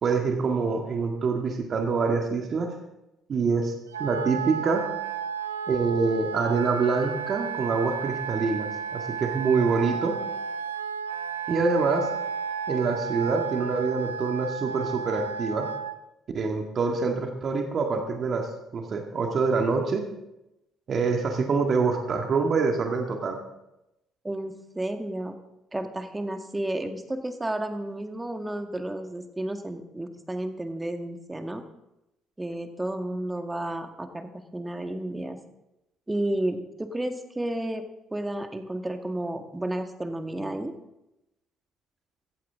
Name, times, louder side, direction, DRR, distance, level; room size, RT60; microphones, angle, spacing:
voice 1, 0.0-2.7 3.3-4.8 5.7-10.2 11.5-12.1 12.7-15.7 16.3-18.5 18.7-20.0 20.9-23.4, right 4 dB, 45° right, 3 dB, 1.9 m, -25 dB
Wind instrument woodwind instrument, 3.9-15.9, right 7 dB, 80° right, 0.6 m, -33 dB
voice 2, 24.2-25.4 25.7-31.6 32.4-35.4 36.1-37.8 38.1-40.7, right 1 dB, 15° right, 6 dB, 1.8 m, -32 dB
17.0 x 14.5 x 3.7 m, 0.93 s
figure-of-eight pair, 50°, 0 cm